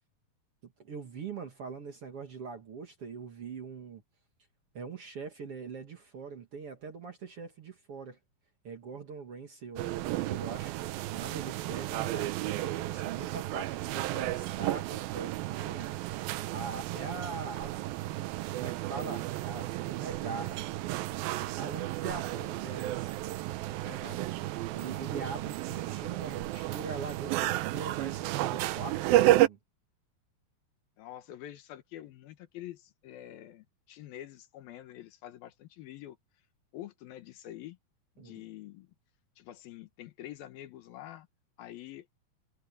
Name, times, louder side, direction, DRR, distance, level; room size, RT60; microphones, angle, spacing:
voice 1, 0.6-4.0 4.7-8.2 8.6-10.7 11.1-15.9 16.5-17.9 18.1-18.3 18.5-20.7 21.5-23.1 24.7-29.6 38.2-38.4, right 5 dB, 50° right, 2.1 m, -42 dB
sound 1, 9.8-29.5, right 16 dB, 80° right, 2.5 m, -32 dB
voice 2, 23.8-24.3 31.0-36.2 36.7-37.8 38.2-38.9 39.4-41.3 41.6-42.1, left 13 dB, 75° left, 2.9 m, -46 dB
omnidirectional pair, 4.4 m